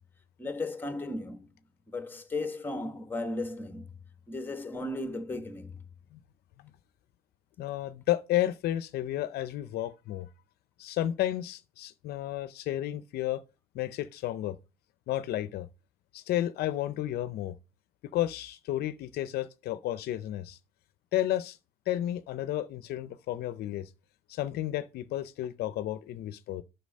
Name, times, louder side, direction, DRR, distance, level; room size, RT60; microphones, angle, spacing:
voice 1, 0.4-1.5 1.9-3.9 4.3-5.8, left 2 dB, 10° left, 1.3 m, -35 dB
voice 2, 7.6-10.3 10.8-13.4 13.7-14.6 15.1-15.7 16.1-17.5 18.1-20.6 21.1-21.6 21.9-23.9 24.3-26.6, left 13 dB, 70° left, 0.6 m, -32 dB
8.3 x 5.9 x 5.2 m
cardioid pair, 110°, 17 cm